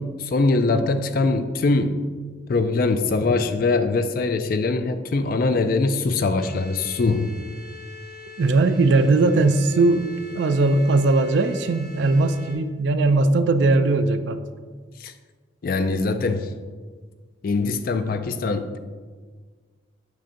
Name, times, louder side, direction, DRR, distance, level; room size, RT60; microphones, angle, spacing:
voice 1, 0.0-1.9 2.5-7.3 15.0-15.1 15.6-16.5 17.4-18.7, left 3 dB, 45° left, 9 dB, 0.3 m, -22 dB
sound 1, 6.4-12.5, left 4 dB, ahead, 1.5 m, -42 dB
voice 2, 8.4-14.4, right 3 dB, 60° right, 10 dB, 0.3 m, -19 dB
7.4 x 5.7 x 2.6 m, 1.5 s
head